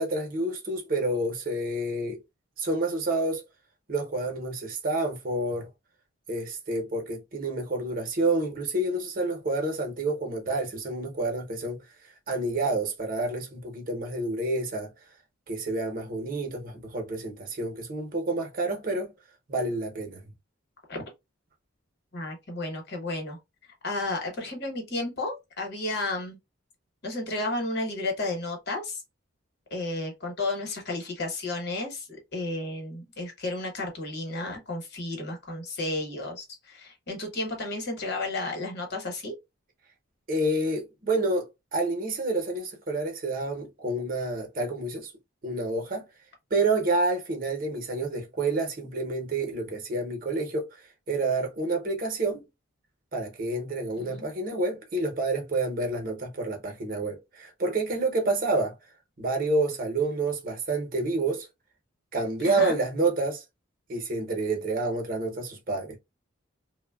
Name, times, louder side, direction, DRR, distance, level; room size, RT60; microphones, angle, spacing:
voice 1, 0.0-2.2 2.6-3.4 3.9-5.7 6.3-11.8 12.3-14.9 15.5-19.1 19.5-20.2 40.3-45.1 45.4-46.1 46.5-50.8 51.1-52.4 53.1-58.8 59.2-61.5 62.1-63.4 63.9-66.0, right 2 dB, 45° right, 0.7 m, -29 dB
voice 2, 22.1-23.4 23.8-26.4 27.0-29.0 29.7-39.3 54.0-54.3 62.4-62.8, left 2 dB, 55° left, 1.0 m, -32 dB
3.0 x 2.1 x 2.2 m
head